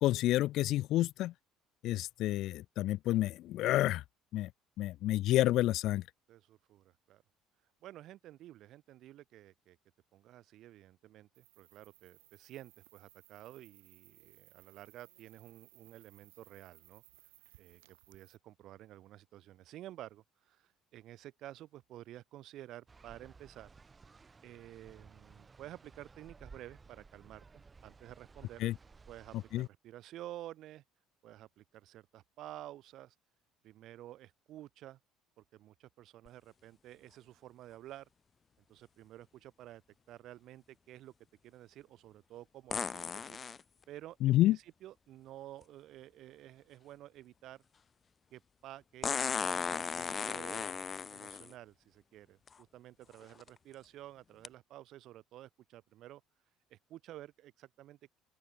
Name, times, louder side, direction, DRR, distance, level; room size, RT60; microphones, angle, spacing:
voice 1, 0.0-1.3 1.8-4.0 4.3-4.5 4.8-6.0 28.6-28.7 29.5-29.7 44.2-44.6, left 15 dB, 65° left, 0.6 m, -29 dB
voice 2, 6.3-7.2 7.8-9.8 10.1-17.0 17.6-23.7 24.4-27.5 27.8-28.6 29.1-30.8 31.2-33.2 33.6-35.0 35.4-38.1 38.7-39.8 40.1-41.1 41.4-43.4 43.9-47.6 48.3-56.2 56.7-58.2, right 14 dB, 65° right, 6.9 m, -51 dB
sound 1, 11.3-18.4, right 27 dB, 85° right, 4.4 m, -62 dB
sound 2, 22.9-29.7, right 4 dB, 30° right, 5.7 m, -57 dB
sound 3, 36.3-36.4 42.7-43.6 45.6-45.7 49.0-51.5 52.5-52.6 53.2-53.5 54.4-54.5, left 6 dB, 35° left, 1.3 m, -36 dB
open air
hypercardioid pair, 65°, 0 cm